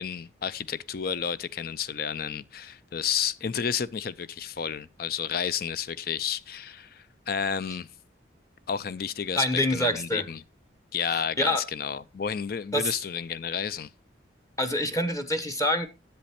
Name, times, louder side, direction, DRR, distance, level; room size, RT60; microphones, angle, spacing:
voice 1, 0.0-7.9 8.7-10.4 10.9-13.9, left 7 dB, 50° left, 0.4 m, -31 dB
voice 2, 9.3-10.2 11.1-11.6 12.7-12.9 14.6-15.9, left 1 dB, 15° left, 0.9 m, -26 dB
10.5 x 7.8 x 4.2 m
head